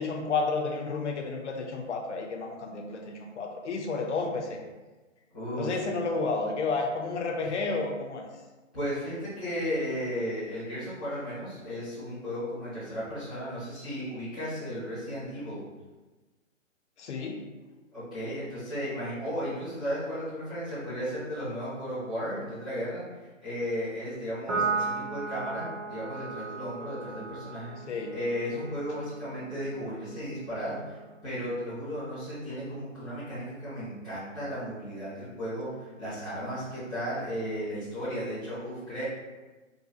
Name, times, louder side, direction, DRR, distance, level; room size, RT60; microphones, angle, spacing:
voice 1, 0.0-4.6 5.6-8.2 17.0-17.5 27.9-28.1, left 4 dB, 60° left, 2 dB, 0.6 m, -31 dB
voice 2, 5.3-5.8 7.4-7.5 8.7-15.6 17.9-39.0, equal, 5° right, -16 dB, 0.4 m, -35 dB
Piano, 24.5-31.2, right 4 dB, 70° right, 1.1 m, -36 dB
3.7 x 2.3 x 2.6 m, 1.2 s
hypercardioid pair, 150°, 40 cm